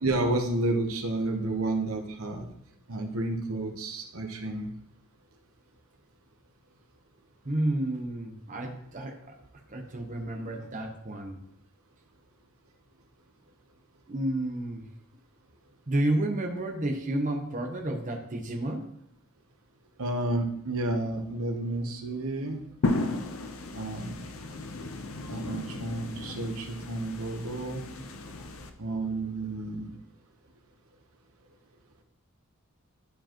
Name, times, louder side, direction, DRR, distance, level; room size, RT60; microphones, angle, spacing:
voice 1, 0.0-2.5 2.9-4.7 20.0-22.6 23.7-24.3 25.3-27.8 28.8-29.9, right 2 dB, 75° right, 4 dB, 1.0 m, -31 dB
voice 2, 7.4-9.2 9.7-11.4 14.1-14.9 15.9-18.8 25.3-25.6, right 1 dB, 35° right, 2 dB, 0.9 m, -31 dB
sound 1, 22.8-28.7, left 2 dB, 65° left, 0.7 m, -34 dB
11.5 x 4.6 x 3.0 m, 0.70 s
head